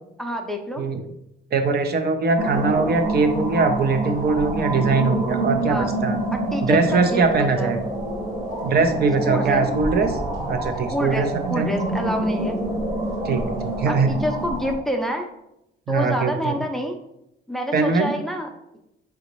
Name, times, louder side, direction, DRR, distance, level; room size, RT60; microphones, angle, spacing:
voice 1, 0.2-0.8 5.7-5.9 6.3-7.7 9.3-9.6 10.9-12.6 13.9-15.3 15.9-17.0 17.5-18.5, equal, ahead, 4 dB, 0.5 m, -27 dB
voice 2, 1.5-6.2 6.6-7.8 8.6-10.2 10.5-11.3 11.6-11.7 13.2-14.1 15.9-16.6 17.7-18.1, right 4 dB, 55° right, 6 dB, 0.6 m, -21 dB
sound 1, 2.4-14.8, right 2 dB, 90° right, 1.4 m, -27 dB
3.9 x 3.4 x 3.0 m, 0.83 s
cardioid pair, 90°, 20 cm